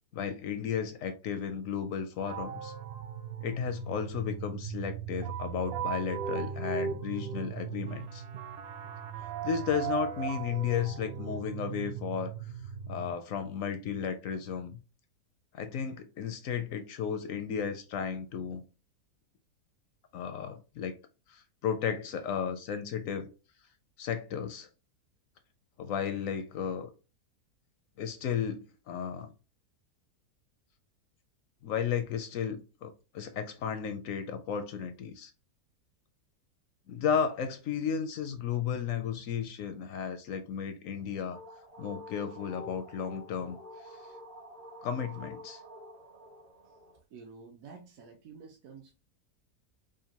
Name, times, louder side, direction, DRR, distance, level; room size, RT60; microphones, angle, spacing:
voice 1, 0.1-2.7 3.4-8.2 9.4-12.5 12.9-14.8 15.5-18.6 20.1-20.9 21.3-23.3 24.0-24.7 25.8-26.9 28.0-29.3 31.6-35.3 36.9-41.4 41.8-44.0 44.8-45.6, left 7 dB, 70° left, 0.8 m, -34 dB
sound 1, 2.3-13.1, right 8 dB, 85° right, 0.5 m, -38 dB
sound 2, 40.9-47.0, left 1 dB, 35° right, 0.6 m, -48 dB
voice 2, 47.1-48.9, right 5 dB, 65° right, 1.1 m, -50 dB
5.1 x 2.5 x 2.8 m
omnidirectional pair, 1.7 m